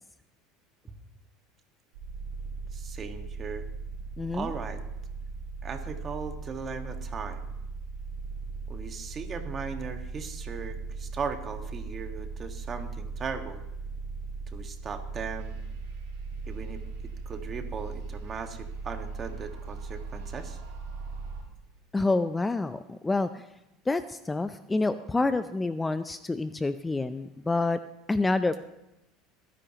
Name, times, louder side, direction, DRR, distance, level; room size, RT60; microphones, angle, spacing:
sound 1, 2.0-21.4, right 4 dB, 80° right, 4.4 m, -38 dB
voice 1, 2.7-3.6 4.3-4.8 5.6-7.5 8.7-13.6 14.5-15.6 16.5-20.6, right 5 dB, 35° right, 6 dB, 1.6 m, -38 dB
voice 2, 4.2-4.5 21.9-23.4 23.9-27.8 28.1-28.6, left 3 dB, 15° left, 12 dB, 0.5 m, -28 dB
23.5 x 10.0 x 2.9 m, 0.90 s
supercardioid pair, 105°, 0 cm